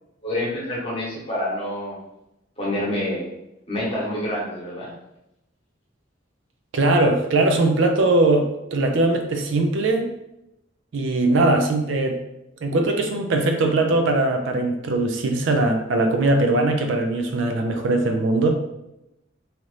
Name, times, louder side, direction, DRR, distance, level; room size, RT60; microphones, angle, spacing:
voice 1, 0.2-2.0 2.6-3.2 3.7-4.9, left 1 dB, 30° left, -6 dB, 1.0 m, -27 dB
voice 2, 6.7-10.1 10.9-12.2 12.6-18.6, right 2 dB, 65° right, 4 dB, 0.4 m, -20 dB
2.8 x 2.5 x 3.2 m, 0.87 s
head